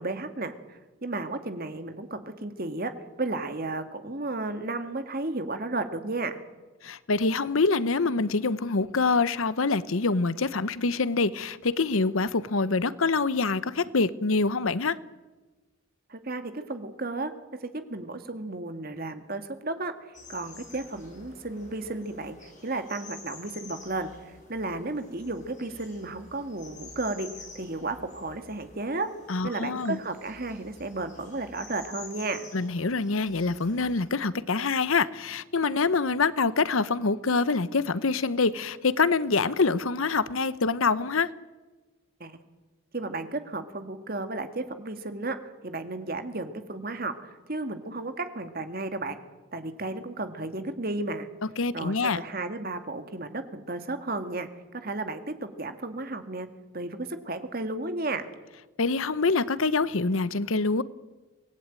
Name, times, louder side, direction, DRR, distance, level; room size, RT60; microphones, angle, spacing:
voice 1, 0.0-6.4 16.1-17.3 17.6-20.0 20.3-29.1 29.4-32.5 42.2-42.4 42.9-49.2 49.5-51.3 51.7-56.5 56.7-58.3, right 2 dB, 45° right, 1.9 m, -33 dB
voice 2, 6.8-15.0 29.3-30.0 32.5-41.3 51.6-52.2 58.8-60.8, left 4 dB, 80° left, 0.9 m, -25 dB
sound 1, 20.1-34.0, left 3 dB, 35° left, 7.5 m, -49 dB
25.0 x 18.5 x 9.0 m
head